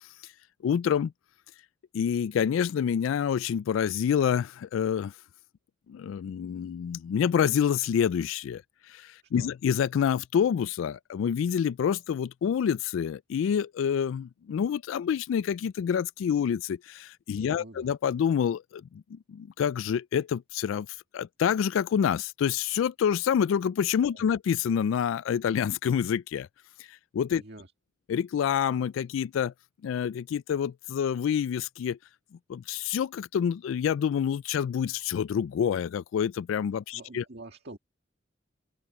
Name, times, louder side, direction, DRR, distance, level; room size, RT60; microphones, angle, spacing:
voice 1, 0.6-1.1 1.9-5.1 5.9-8.6 8.9-20.9 21.1-26.5 26.9-27.4 28.1-29.5 29.8-32.0 32.5-37.2, left 8 dB, 80° left, 0.3 m, -27 dB
voice 2, 17.5-18.0 24.0-24.4 27.3-27.7 36.9-37.8, right 2 dB, 60° right, 1.9 m, -47 dB
head